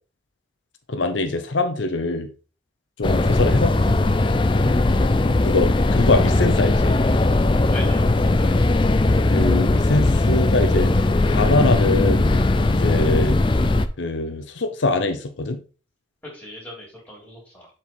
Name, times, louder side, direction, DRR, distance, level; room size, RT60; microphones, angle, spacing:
voice 1, 0.9-2.3 3.0-4.0 5.4-6.9 9.3-10.9 11.3-12.3 12.7-13.4 14.0-15.6, left 2 dB, 75° left, 7 dB, 0.8 m, -23 dB
sound 1, 3.0-13.9, left 2 dB, 25° left, 0.4 m, -19 dB
voice 2, 7.7-8.5 16.3-17.7, left 1 dB, 10° left, -4 dB, 3.1 m, -39 dB
7.2 x 4.6 x 4.3 m, 0.36 s
head